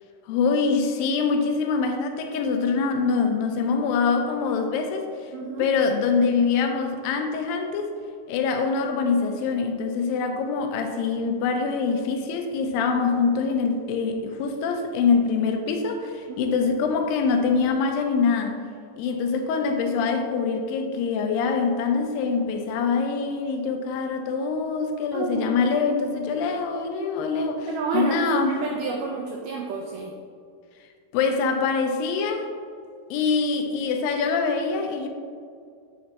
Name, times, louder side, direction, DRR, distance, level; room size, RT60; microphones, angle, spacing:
voice 1, 0.3-5.1 5.6-7.9 8.3-18.6 19.0-28.6 31.1-32.5 33.1-35.1, left 5 dB, 80° left, 5 dB, 2.2 m, -24 dB
voice 2, 5.3-5.7 16.3-16.4 25.1-25.6 27.7-30.1, right 4 dB, 85° right, 1 dB, 1.9 m, -30 dB
8.4 x 4.2 x 2.8 m, 2.3 s
omnidirectional pair, 4.2 m